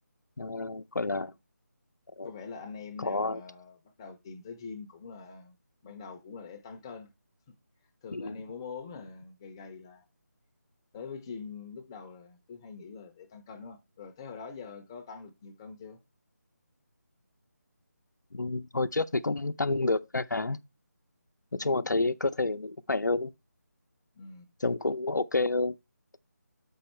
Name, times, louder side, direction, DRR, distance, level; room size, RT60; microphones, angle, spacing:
voice 1, 0.4-1.3 2.2-2.3 3.0-3.4 8.1-8.4 18.3-20.6 21.5-23.3 24.6-25.7, left 3 dB, 85° left, 0.6 m, -29 dB
voice 2, 2.2-5.5 5.8-7.1 8.0-10.0 10.9-16.0 24.1-24.5, left 5 dB, 15° left, 0.6 m, -44 dB
7.6 x 5.4 x 4.3 m
figure-of-eight pair, 160°, 9 cm